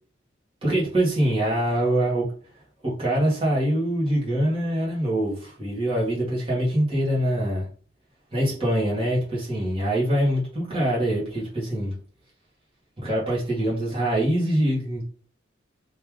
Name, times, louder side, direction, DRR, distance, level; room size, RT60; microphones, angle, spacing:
voice 1, 0.6-2.3 2.8-7.7 8.3-11.9 13.0-15.0, right 1 dB, 25° right, -5 dB, 1.4 m, -24 dB
3.1 x 2.8 x 3.6 m, 0.42 s
head